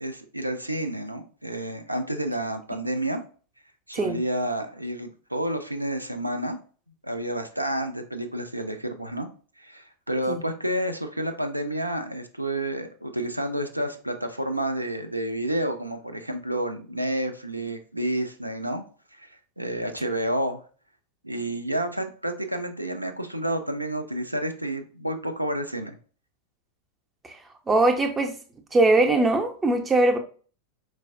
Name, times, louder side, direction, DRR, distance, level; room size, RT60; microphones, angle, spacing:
voice 1, 0.0-3.2 3.9-6.6 7.0-9.3 9.6-18.8 19.1-20.6 21.2-26.0, right 1 dB, 85° right, 0.4 m, -30 dB
voice 2, 27.7-28.4 28.7-30.2, right 2 dB, 15° right, 0.5 m, -21 dB
4.4 x 2.0 x 2.6 m
figure-of-eight pair, 90°, 0 cm